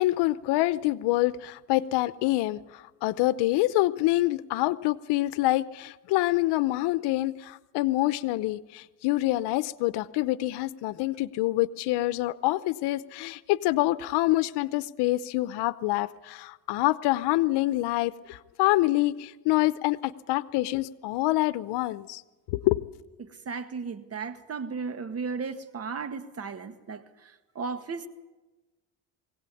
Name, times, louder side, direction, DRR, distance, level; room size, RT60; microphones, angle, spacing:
voice 1, 0.0-22.2 22.5-22.8, left 17 dB, 80° left, 0.8 m, -26 dB
voice 2, 23.2-28.1, right 5 dB, 35° right, 1.8 m, -35 dB
22.0 x 17.5 x 8.5 m
cardioid pair, 100°, 40 cm